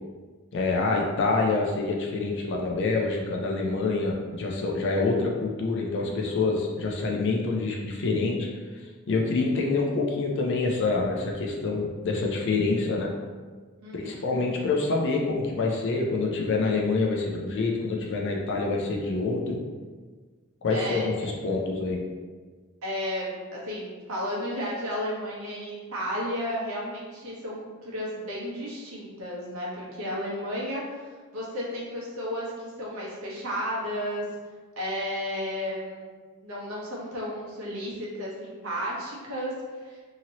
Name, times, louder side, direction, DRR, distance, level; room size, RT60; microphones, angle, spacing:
voice 1, 0.5-8.5 9.1-13.1 13.9-19.6 20.6-22.0, left 3 dB, 60° left, 0 dB, 0.4 m, -26 dB
voice 2, 13.8-14.3 20.7-21.1 22.8-34.2 34.8-36.1 36.4-39.5 39.8-40.0, equal, 75° right, -5 dB, 0.9 m, -33 dB
2.9 x 2.7 x 2.8 m, 1.4 s
head